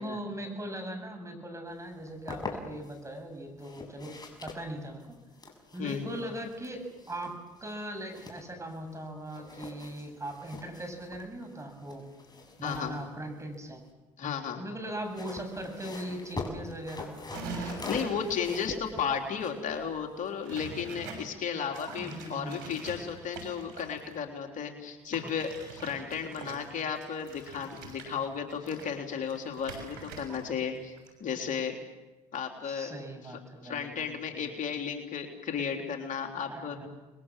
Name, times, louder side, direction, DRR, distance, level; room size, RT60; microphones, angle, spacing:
voice 1, 0.0-4.2 4.4-5.0 5.7-12.0 12.6-13.8 14.6-17.1 22.0-22.6 26.4-26.5 32.6-34.5 36.4-36.9, right 1 dB, 20° right, 5 dB, 7.5 m, -40 dB
sound 1, 1.9-3.0 3.6-9.0 9.3-13.9 14.9-20.5, left 3 dB, 25° left, 6.7 m, -44 dB
voice 2, 5.8-6.1 12.6-13.0 14.2-14.6 17.6-30.9 31.2-31.8 32.3-32.9 33.3-36.8, left 7 dB, 55° left, 3 dB, 3.6 m, -34 dB
sound 2, 17.3-18.5 20.4-21.2 21.7-24.2 25.1-30.6 30.8-31.1, right 3 dB, 90° right, 6.4 m, -43 dB
30.0 x 21.5 x 7.5 m, 1.1 s
supercardioid pair, 70°, 16 cm